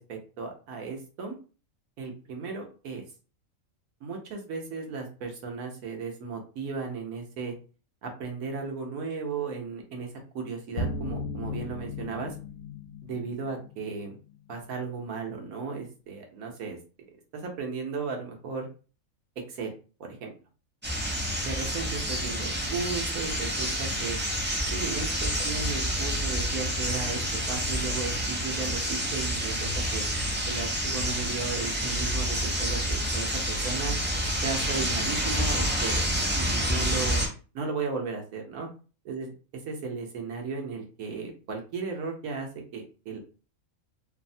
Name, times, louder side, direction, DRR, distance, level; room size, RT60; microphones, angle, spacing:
voice 1, 0.0-1.3 2.0-3.0 4.0-7.5 8.0-10.1 10.3-12.3 13.0-14.2 14.5-16.8 17.3-18.7 19.5-19.7 20.0-20.3 21.4-24.2 24.7-27.2 27.5-30.0 30.4-33.9 34.4-36.0 36.3-38.7 39.0-39.3 39.7-43.2, right 4 dB, 80° right, 2 dB, 1.2 m, -35 dB
sound 1, 10.8-13.2, left 2 dB, 90° left, 1.0 m, -34 dB
sound 2, 20.8-37.3, equal, 15° right, 0.4 m, -28 dB
3.0 x 2.0 x 2.6 m, 0.36 s
omnidirectional pair, 1.5 m